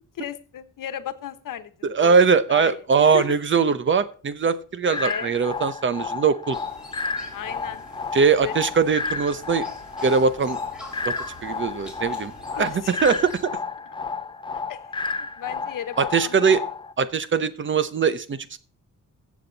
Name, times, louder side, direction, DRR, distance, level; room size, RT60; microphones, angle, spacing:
voice 1, 0.2-2.1 2.5-3.4 4.8-5.3 7.3-7.8 8.2-8.6 12.5-13.1 14.7-14.8 15.2-16.5 17.4-17.5, left 10 dB, 85° left, 12 dB, 1.1 m, -35 dB
voice 2, 1.8-6.6 8.1-9.7 10.0-10.6 11.4-12.3 12.6-13.5 16.0-16.6 17.0-18.6, right 5 dB, 40° right, 14 dB, 0.8 m, -21 dB
sound 1, 4.9-16.9, left 4 dB, 15° left, 0.5 m, -32 dB
sound 2, 6.5-13.5, left 1 dB, ahead, 3.6 m, -44 dB
15.0 x 7.3 x 4.0 m, 0.40 s
wide cardioid pair, 165°, 32 cm